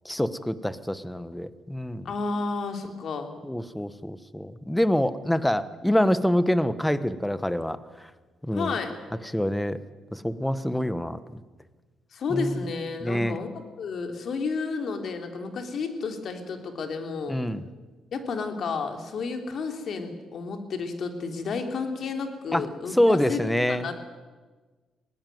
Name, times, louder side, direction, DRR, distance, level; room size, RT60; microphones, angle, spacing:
voice 1, 0.0-2.1 3.4-7.8 8.4-8.8 9.3-9.8 10.1-11.4 12.3-12.6 13.0-13.4 17.3-17.6 22.5-22.6 22.9-23.9, equal, 5° left, 14 dB, 1.2 m, -26 dB
voice 2, 2.1-3.3 8.5-9.0 12.1-13.5 13.8-17.4 18.1-24.0, left 4 dB, 60° left, 5 dB, 3.5 m, -31 dB
20.5 x 18.5 x 9.4 m, 1.3 s
cardioid pair, 90°, 0 cm